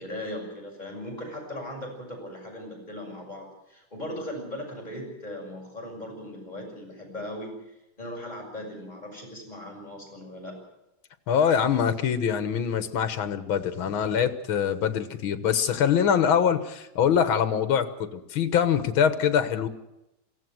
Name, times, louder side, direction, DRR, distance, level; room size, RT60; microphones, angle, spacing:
voice 1, 0.0-10.6, left 1 dB, 20° left, -1 dB, 6.5 m, -38 dB
voice 2, 11.3-19.7, left 8 dB, 80° left, 11 dB, 2.1 m, -24 dB
22.5 x 16.5 x 7.8 m, 0.89 s
omnidirectional pair, 2.2 m